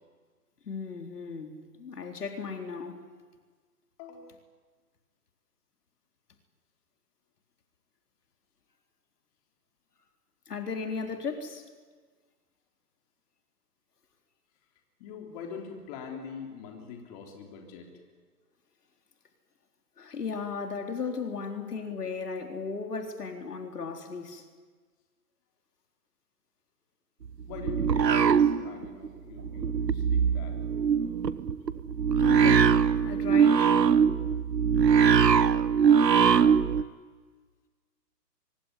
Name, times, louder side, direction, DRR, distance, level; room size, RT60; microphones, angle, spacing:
voice 1, 0.6-3.0 10.5-11.7 20.0-24.4 32.1-32.8 33.0-33.7, left 5 dB, 70° left, 5 dB, 3.9 m, -36 dB
voice 2, 4.0-4.4 15.0-17.9 27.4-30.6, left 6 dB, 25° left, 2 dB, 3.7 m, -43 dB
sound 1, 27.2-29.1 29.4-36.8, right 7 dB, 90° right, 1.3 m, -22 dB
24.0 x 23.0 x 10.0 m, 1.5 s
hypercardioid pair, 150°, 48 cm